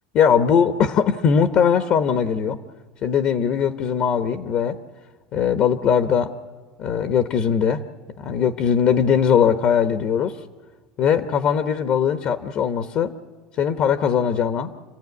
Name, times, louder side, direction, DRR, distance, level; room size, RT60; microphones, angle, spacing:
voice 1, 0.1-2.6 3.0-4.8 5.3-6.3 6.8-7.8 8.2-10.4 11.0-13.1 13.6-14.7, left 7 dB, 50° left, 10 dB, 1.0 m, -20 dB
28.0 x 15.0 x 9.5 m, 1.5 s
supercardioid pair, 125°, 2 cm